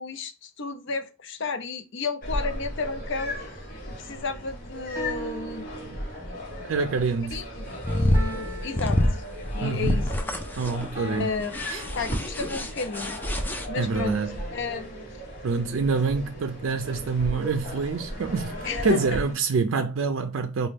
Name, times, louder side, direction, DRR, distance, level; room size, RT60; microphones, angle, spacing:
voice 1, 0.0-3.4 3.8-5.8 7.3-9.0 9.6-10.1 11.1-11.6 12.0-13.2 13.7-14.2 14.5-15.0 18.6-19.2, left 4 dB, 60° left, 0.5 m, -32 dB
sound 1, 2.2-19.3, equal, 45° left, 1.1 m, -36 dB
sound 2, 4.9-6.5 8.1-9.8 10.9-12.9 13.9-16.3, right 2 dB, 15° right, 2.0 m, -41 dB
voice 2, 6.6-7.4 9.5-10.0 10.6-11.3 11.7-11.8 13.8-14.4 15.4-20.7, right 4 dB, 70° right, 0.4 m, -26 dB
sound 3, 7.6-13.7, left 1 dB, 10° left, 0.4 m, -27 dB
4.2 x 2.2 x 3.2 m
head